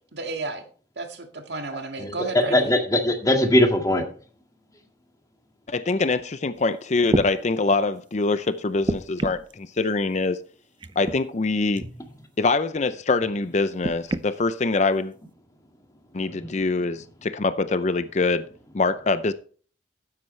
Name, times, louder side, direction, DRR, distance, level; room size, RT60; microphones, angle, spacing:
voice 1, 0.1-0.7 1.0-2.7, right 3 dB, 70° right, 1.9 m, -32 dB
voice 2, 2.0-4.0, left 1 dB, 20° left, 1.9 m, -20 dB
voice 3, 5.7-10.4 11.0-11.8 12.4-15.1 16.1-18.4 18.7-19.3, left 3 dB, 40° left, 0.5 m, -24 dB
sound 1, 6.5-6.6 7.1-7.3 8.8-9.5 10.8-11.2 11.8-11.9 13.8-14.3 15.2-15.3, right 1 dB, 25° right, 0.5 m, -27 dB
12.5 x 9.6 x 3.2 m
head